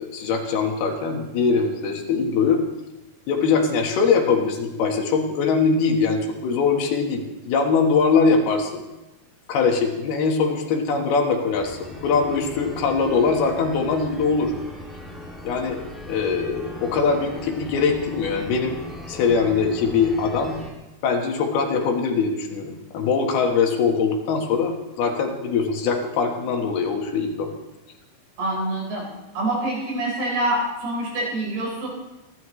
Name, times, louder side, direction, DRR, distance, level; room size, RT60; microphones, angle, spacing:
voice 1, 0.0-2.6 3.3-8.8 9.5-14.5 15.4-15.8 16.1-18.8 19.1-20.6 21.0-27.5, left 5 dB, 75° left, 3 dB, 3.3 m, -22 dB
sound 1, 11.5-20.7, left 1 dB, ahead, 0.7 m, -39 dB
voice 2, 28.4-29.0 29.3-31.9, right 1 dB, 70° right, -3 dB, 6.5 m, -25 dB
27.0 x 11.5 x 3.2 m, 0.98 s
omnidirectional pair, 4.7 m